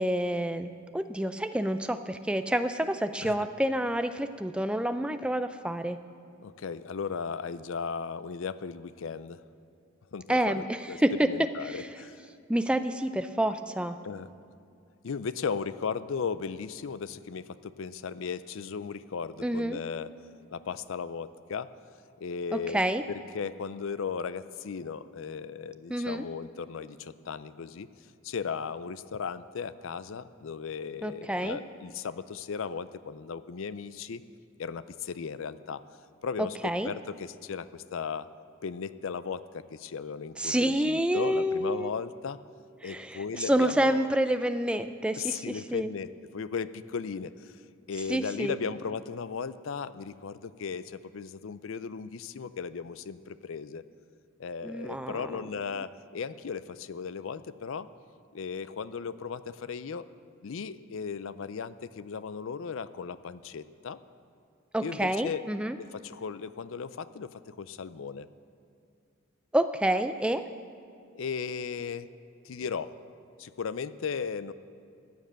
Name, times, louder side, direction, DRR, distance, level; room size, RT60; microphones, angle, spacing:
voice 1, 0.0-6.0 10.3-11.3 11.6-11.9 12.5-14.0 19.4-19.8 22.5-23.0 25.9-26.2 31.0-31.6 36.4-36.9 40.4-41.9 42.8-45.9 48.1-48.6 54.6-55.4 64.7-65.8 69.5-70.5, right 1 dB, 5° right, 9 dB, 0.4 m, -28 dB
voice 2, 6.4-9.4 10.1-11.0 11.3-12.2 14.0-14.3 15.0-20.1 20.5-21.7 22.2-22.8 23.1-27.9 28.2-34.2 34.6-35.8 36.2-38.3 38.6-42.4 42.8-44.1 45.2-47.6 47.9-53.8 54.4-57.9 58.3-60.1 60.4-64.0 64.8-65.4 65.8-68.3 71.1-72.1 72.4-72.9 73.4-74.5, left 6 dB, 70° left, 15 dB, 0.5 m, -36 dB
14.5 x 9.1 x 7.5 m, 2.4 s
head